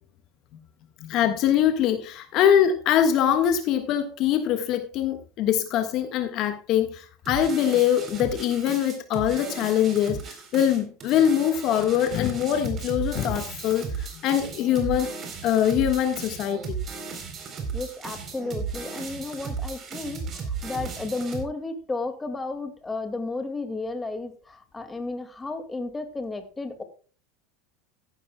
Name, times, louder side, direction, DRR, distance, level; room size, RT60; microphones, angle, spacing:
voice 1, 1.0-15.1 15.4-16.8, left 10 dB, 50° left, 7 dB, 1.5 m, -23 dB
sound 1, 7.3-21.4, right 5 dB, 35° right, 3.9 m, -35 dB
voice 2, 17.7-26.8, left 3 dB, 15° left, 8 dB, 2.1 m, -33 dB
14.5 x 11.5 x 2.3 m, 0.37 s
supercardioid pair, 115°, 0 cm